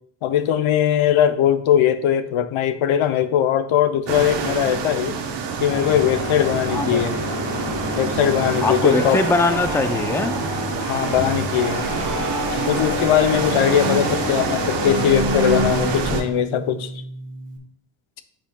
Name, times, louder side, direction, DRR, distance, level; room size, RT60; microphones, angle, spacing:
voice 1, 0.2-5.1 5.6-7.2 8.0-9.2 10.9-11.8 12.5-16.9, left 10 dB, 75° left, 10 dB, 0.7 m, -20 dB
sound 1, 4.1-16.2, right 5 dB, 60° right, 1.0 m, -27 dB
sound 2, 5.7-16.0, left 4 dB, 35° left, 2.5 m, -30 dB
voice 2, 6.7-7.0 8.6-10.3 13.9-14.0, left 3 dB, 5° left, 8 dB, 0.4 m, -21 dB
Bowed string instrument, 11.5-17.6, right 1 dB, 40° right, 1.4 m, -29 dB
10.0 x 5.2 x 2.2 m, 0.62 s
cardioid pair, 90°, 49 cm